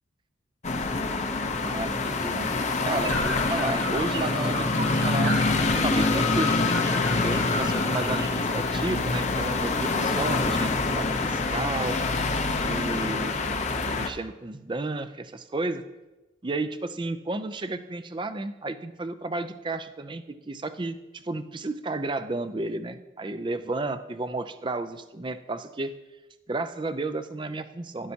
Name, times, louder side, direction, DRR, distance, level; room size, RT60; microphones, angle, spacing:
sound 1, 0.6-14.1, left 3 dB, 40° left, 0.7 m, -26 dB
voice 1, 1.6-2.5 2.8-5.4 5.8-6.8 7.1-12.0 12.7-13.4 13.9-15.8 16.4-25.9 26.5-28.1, right 2 dB, 25° right, 10 dB, 0.5 m, -32 dB
sound 2, 3.0-8.4, right 1 dB, 60° right, 1.9 m, -35 dB
12.0 x 11.5 x 2.8 m, 1.1 s
head